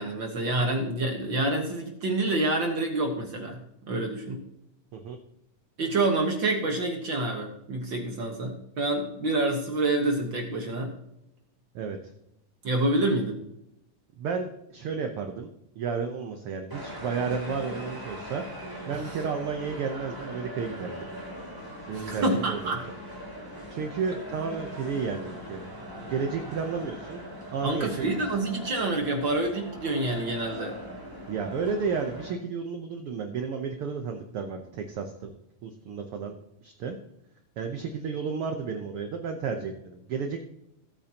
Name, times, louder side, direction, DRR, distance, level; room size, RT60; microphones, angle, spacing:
voice 1, 0.0-3.6 3.9-4.4 5.8-10.9 12.6-13.4 21.9-22.8 27.6-30.7, right 2 dB, 50° right, 2 dB, 1.5 m, -27 dB
voice 2, 14.2-15.5 15.8-18.4 18.9-21.1 21.9-22.8 23.7-25.6 26.0-28.1 31.3-35.3 35.6-36.3 36.6-37.0 37.6-40.4, right 5 dB, 75° right, 5 dB, 1.3 m, -32 dB
sound 1, 16.7-32.3, equal, 5° right, 2.4 m, -40 dB
17.5 x 8.6 x 2.9 m, 0.81 s
omnidirectional pair, 3.7 m